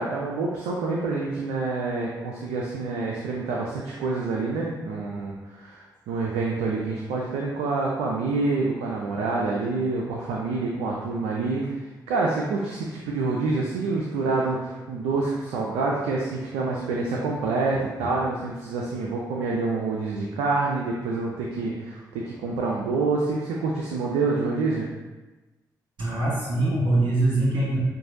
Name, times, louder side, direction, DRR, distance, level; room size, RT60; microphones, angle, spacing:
voice 1, 0.0-11.7 12.1-24.9, right 3 dB, 90° right, -2 dB, 0.5 m, -27 dB
voice 2, 26.0-27.8, right 2 dB, 70° right, -7 dB, 1.3 m, -23 dB
7.4 x 2.6 x 2.7 m, 1.1 s
supercardioid pair, 45°, 8 cm